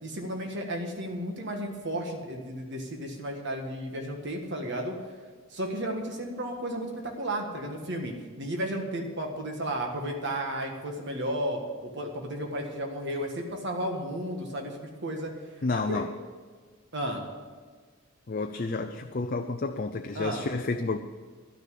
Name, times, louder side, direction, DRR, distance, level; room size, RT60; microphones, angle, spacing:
voice 1, 0.0-4.9 5.5-15.3 15.7-16.0 16.9-17.3 20.1-20.4, right 1 dB, 55° right, 2 dB, 1.6 m, -33 dB
voice 2, 15.6-16.1 18.3-21.0, left 3 dB, 40° left, 6 dB, 0.5 m, -30 dB
12.0 x 6.6 x 9.4 m, 1.5 s
head